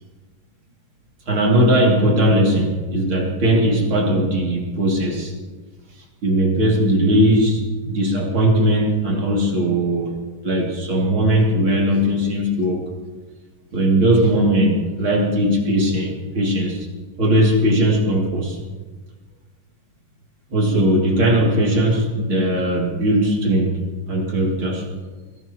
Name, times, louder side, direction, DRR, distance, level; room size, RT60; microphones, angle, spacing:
voice 1, 1.3-5.3 6.2-10.1 10.4-12.9 13.7-16.9 17.2-18.6 20.5-23.8 24.1-24.9, right 1 dB, 75° right, -1 dB, 3.6 m, -19 dB
22.0 x 17.5 x 3.0 m, 1.3 s
omnidirectional pair, 2.3 m